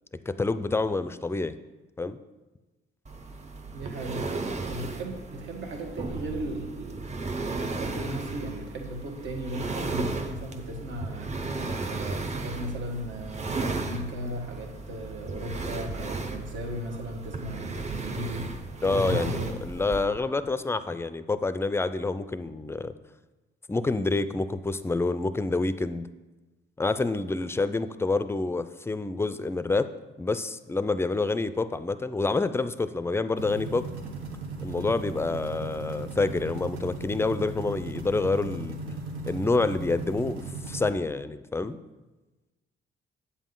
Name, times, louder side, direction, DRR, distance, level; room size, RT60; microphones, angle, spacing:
voice 1, 0.3-1.6 2.0-2.2 18.8-22.9 23.7-26.1 26.8-29.9 30.2-33.8 34.6-38.8 39.3-41.8, left 3 dB, 10° left, 13 dB, 0.4 m, -27 dB
sound 1, 3.1-20.1, right 3 dB, 35° right, 0.9 m, -35 dB
voice 2, 3.7-4.4 4.7-7.1 7.4-11.4 11.8-18.5 18.9-19.6, right 1 dB, 70° right, 2 dB, 1.4 m, -36 dB
sound 2, 33.4-40.9, right 3 dB, 90° right, 1.3 m, -37 dB
8.3 x 7.2 x 3.8 m, 1.2 s
cardioid pair, 90°, 20 cm